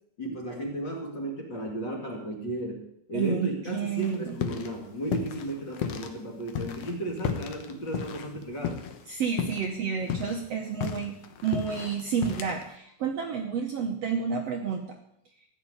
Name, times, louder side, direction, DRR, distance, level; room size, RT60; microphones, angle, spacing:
voice 1, 0.2-8.8, right 1 dB, 35° left, 0 dB, 2.4 m, -34 dB
voice 2, 3.1-4.4 9.1-11.2 11.4-15.0, right 6 dB, 65° right, 3 dB, 1.7 m, -30 dB
sound 1, 4.0-4.7 5.0-6.1 6.5-9.1 9.4-9.7 10.0-12.7, left 8 dB, 60° left, 1.8 m, -33 dB
14.5 x 6.7 x 9.6 m, 0.74 s
omnidirectional pair, 3.9 m